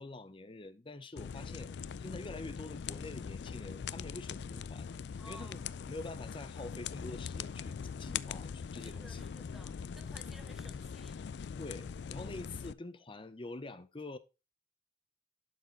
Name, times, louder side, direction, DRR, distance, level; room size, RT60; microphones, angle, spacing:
voice 1, 0.0-1.7 2.0-4.9 5.3-9.2 11.6-14.2, left 2 dB, 30° left, 0.8 m, -46 dB
sound 1, 1.2-12.7, left 6 dB, 70° left, 0.4 m, -42 dB
voice 2, 1.3-1.7 5.2-5.7 8.8-11.2, equal, ahead, 1.1 m, -56 dB
11.5 x 4.3 x 4.0 m
head